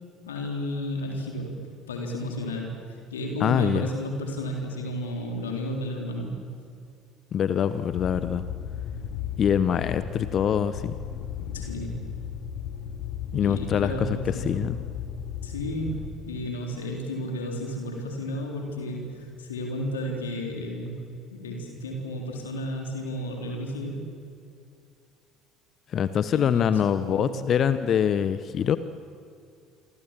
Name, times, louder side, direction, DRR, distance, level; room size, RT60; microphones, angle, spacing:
voice 1, 0.3-1.6 1.9-2.7 3.1-6.3 11.5-12.1 13.3-14.7 15.4-21.0 21.3-24.0 26.3-27.4, equal, 75° left, 1 dB, 3.9 m, -32 dB
voice 2, 3.4-3.9 7.3-8.4 9.4-11.0 13.3-14.2 14.4-14.8 25.9-28.8, left 8 dB, 40° left, 13 dB, 0.9 m, -24 dB
sound 1, 7.9-16.1, left 8 dB, 60° left, 2.5 m, -35 dB
27.5 x 25.0 x 7.6 m, 2.4 s
figure-of-eight pair, 60°, 0 cm